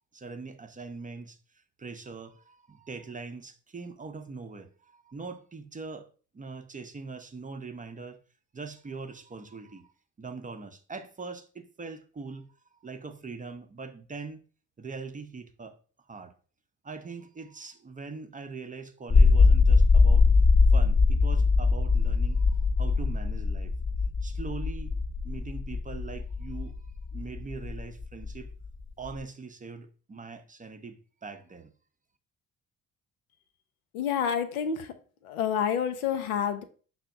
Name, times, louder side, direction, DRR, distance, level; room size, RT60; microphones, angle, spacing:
voice 1, 0.1-1.4 1.8-6.1 6.3-8.2 8.5-9.9 10.2-12.5 12.8-14.4 14.8-15.8 16.1-16.3 16.8-20.3 20.7-23.7 24.2-25.0 25.2-26.7 27.1-28.5 29.0-31.7, right 4 dB, 20° right, 0.6 m, -42 dB
sound 1, 19.1-29.2, left 4 dB, 30° left, 0.8 m, -22 dB
voice 2, 33.9-34.9 35.2-36.6, left 8 dB, 80° left, 0.6 m, -28 dB
5.7 x 2.1 x 3.6 m
hypercardioid pair, 50°, 41 cm